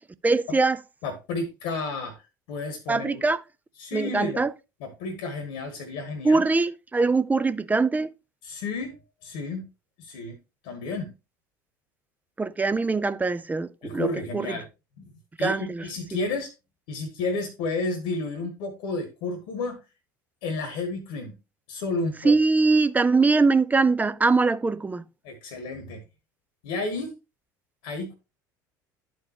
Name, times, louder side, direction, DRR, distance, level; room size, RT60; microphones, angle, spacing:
voice 1, 0.2-0.8 2.9-3.4 3.9-4.5 6.2-8.1 12.4-14.5 15.4-15.8 22.2-25.1, right 3 dB, 15° right, 0.5 m, -22 dB
voice 2, 1.0-2.2 2.5-3.3 3.8-4.4 4.8-6.4 8.4-9.0 9.2-9.6 10.0-10.4 10.6-11.1 13.8-14.7 15.0-15.1 15.4-16.5 16.9-19.8 20.4-21.4 21.7-22.3 25.2-26.0 26.6-27.1 27.8-28.1, left 3 dB, 65° left, 1.4 m, -31 dB
11.5 x 4.5 x 2.9 m
hypercardioid pair, 70°, 10 cm